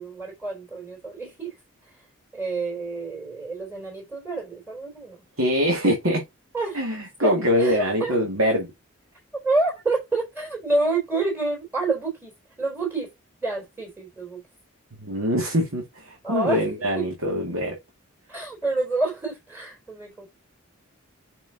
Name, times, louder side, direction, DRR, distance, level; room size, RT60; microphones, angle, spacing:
voice 1, 0.0-1.5 1.8-2.0 2.3-5.2 6.5-6.9 7.2-8.1 9.4-12.3 12.6-13.1 13.4-14.4 16.2-16.7 17.0-17.1 18.3-20.3, right 3 dB, 10° right, 3.5 m, -28 dB
voice 2, 5.4-6.2 6.7-8.7 15.0-17.8, equal, 85° right, 2.2 m, -23 dB
6.1 x 6.1 x 2.8 m
head